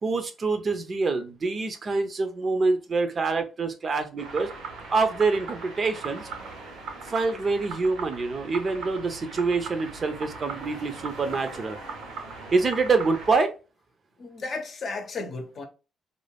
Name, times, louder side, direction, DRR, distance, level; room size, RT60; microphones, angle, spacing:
voice 1, 0.0-4.5 4.9-6.3 7.0-11.8 12.5-13.5, right 4 dB, 40° right, 0.5 m, -26 dB
sound 1, 4.2-13.3, right 4 dB, 90° right, 0.9 m, -39 dB
voice 2, 14.2-15.6, left 3 dB, 50° left, 0.7 m, -34 dB
2.5 x 2.2 x 3.3 m
cardioid pair, 90°, 0 cm